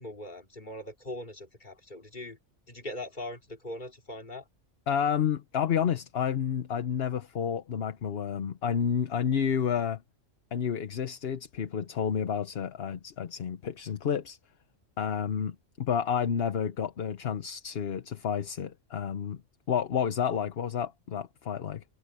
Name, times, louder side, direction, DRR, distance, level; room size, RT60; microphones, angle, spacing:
voice 1, 0.0-2.4 2.7-4.4, left 1 dB, 40° left, 3.0 m, -41 dB
voice 2, 4.9-10.0 10.5-14.4 15.0-19.4 19.7-21.8, left 8 dB, 55° left, 1.1 m, -30 dB
omnidirectional pair, 1.2 m